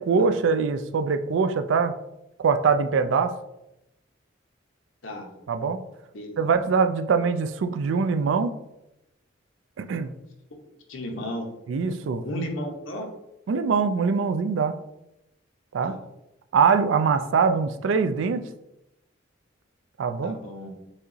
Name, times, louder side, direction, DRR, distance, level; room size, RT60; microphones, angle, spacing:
voice 1, 0.0-1.9 2.4-3.3 5.5-5.8 6.4-8.5 9.8-10.1 11.7-12.2 13.5-14.8 15.7-16.0 16.5-18.4 20.0-20.4, right 5 dB, 75° right, 9 dB, 0.4 m, -23 dB
voice 2, 6.1-6.5 10.9-11.5 12.2-13.1 15.8-16.0 20.2-20.7, equal, 90° left, 2 dB, 1.0 m, -34 dB
6.1 x 2.9 x 2.7 m, 0.89 s
head